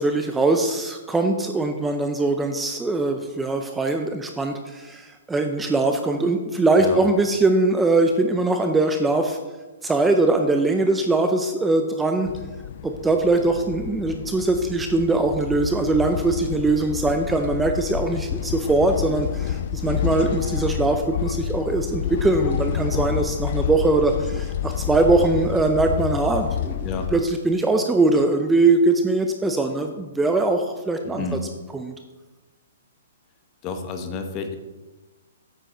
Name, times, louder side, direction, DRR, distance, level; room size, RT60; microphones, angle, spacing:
voice 1, 0.0-9.4 9.8-12.3 12.8-26.9 27.1-31.2 31.7-31.9, right 2 dB, 10° right, 5 dB, 0.5 m, -21 dB
sound 1, 12.3-27.2, left 10 dB, 50° left, 0.4 m, -29 dB
voice 2, 31.0-31.4 33.6-34.6, left 4 dB, 30° left, 6 dB, 1.0 m, -30 dB
9.0 x 7.5 x 3.8 m, 1.2 s
hypercardioid pair, 145°, 0 cm